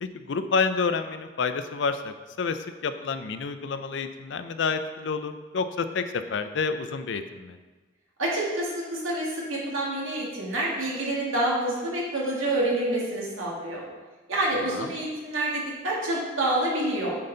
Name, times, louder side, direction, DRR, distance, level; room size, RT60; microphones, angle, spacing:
voice 1, 0.0-6.0 6.3-7.6 14.7-14.9, left 5 dB, 65° left, 10 dB, 0.4 m, -29 dB
voice 2, 8.2-13.8 14.3-17.2, right 1 dB, 90° right, -4 dB, 1.9 m, -27 dB
8.6 x 4.2 x 3.9 m, 1.3 s
head